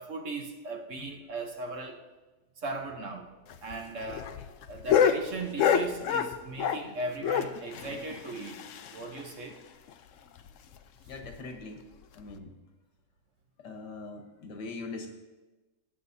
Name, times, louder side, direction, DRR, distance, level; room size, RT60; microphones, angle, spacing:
voice 1, 0.0-2.0 2.6-3.3 3.6-4.4 4.7-8.6 8.9-9.6, right 2 dB, 55° right, 3 dB, 1.1 m, -38 dB
sound 1, 3.5-6.9 7.2-9.2 9.5-9.6 9.9-10.0 10.4-10.5 11.1-11.4 12.2-12.3, left 8 dB, 65° left, 0.8 m, -28 dB
voice 2, 11.1-11.8 12.2-12.5 13.6-15.1, left 3 dB, 90° left, 4 dB, 1.8 m, -41 dB
20.0 x 7.9 x 2.7 m, 1.2 s
omnidirectional pair, 1.8 m